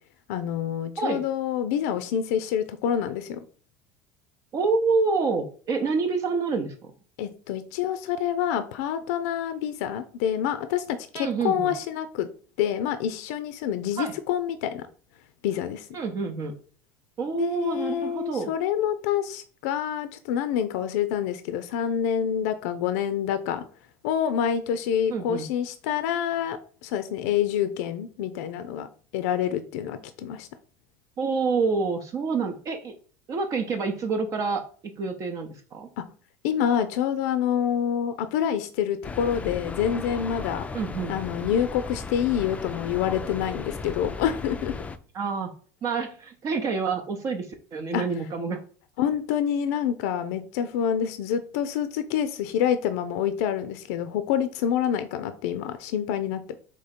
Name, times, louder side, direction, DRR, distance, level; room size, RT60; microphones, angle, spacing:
voice 1, 0.3-3.4 7.2-12.3 12.6-14.9 15.4-15.9 17.3-23.6 24.0-28.9 29.1-30.5 36.0-36.1 36.4-40.7 41.1-44.7 47.9-48.0 49.0-56.6, left 9 dB, 75° left, 10 dB, 0.4 m, -27 dB
voice 2, 4.5-6.7 11.1-11.7 14.0-14.1 15.9-16.5 17.2-18.5 25.1-25.5 31.2-32.9 33.3-35.9 40.7-41.1 45.1-45.5 45.8-48.6, right 4 dB, 45° right, 3 dB, 0.7 m, -27 dB
sound 1, 39.0-45.0, left 4 dB, 15° left, 0.4 m, -36 dB
3.7 x 3.1 x 4.2 m, 0.42 s
hypercardioid pair, 90°, 8 cm